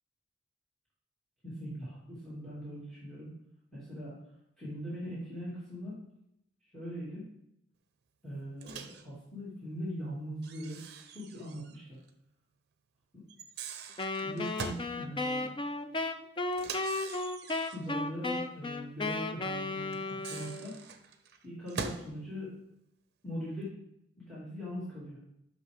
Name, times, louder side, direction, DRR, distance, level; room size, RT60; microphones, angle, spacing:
voice 1, 1.4-3.3 3.7-4.1 4.6-6.0 6.6-7.2 8.2-10.8 11.1-12.0 13.1-13.2 14.2-15.5 17.7-20.8 21.4-22.5 23.2-23.8 24.3-25.2, equal, 5° left, -10 dB, 2.3 m, -41 dB
Microwave oven, 8.6-9.1 10.4-11.8 12.1-12.2 13.3-14.9 16.5-17.9 19.9-22.1, right 5 dB, 55° right, 0.6 m, -43 dB
Wind instrument woodwind instrument, 14.0-20.8, left 2 dB, 25° left, 0.4 m, -35 dB
11.0 x 6.2 x 3.5 m, 0.79 s
head